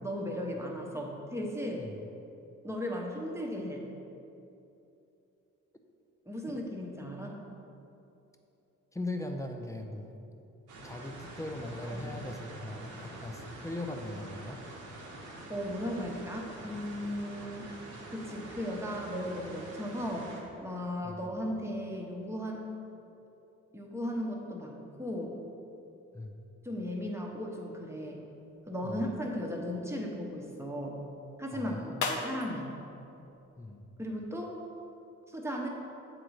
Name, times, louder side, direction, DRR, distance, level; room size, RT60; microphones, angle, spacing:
voice 1, 0.0-1.9 2.6-3.8 6.3-7.4 11.9-12.1 15.5-17.7 18.1-20.3 20.6-22.7 23.7-25.3 26.6-28.2 28.7-31.0 31.4-32.7 34.0-34.6 35.3-35.7, equal, 10° right, -1 dB, 1.0 m, -36 dB
voice 2, 8.9-10.2 10.8-14.6 21.0-21.2 26.1-26.4 28.8-29.1 31.5-32.1 33.6-33.8, left 1 dB, 10° left, 3 dB, 0.5 m, -40 dB
sound 1, 10.7-20.4, right 2 dB, 75° right, 1.2 m, -46 dB
sound 2, 28.4-34.3, left 4 dB, 75° left, 0.8 m, -42 dB
7.5 x 3.9 x 4.8 m, 2.8 s
cardioid pair, 90°, 30 cm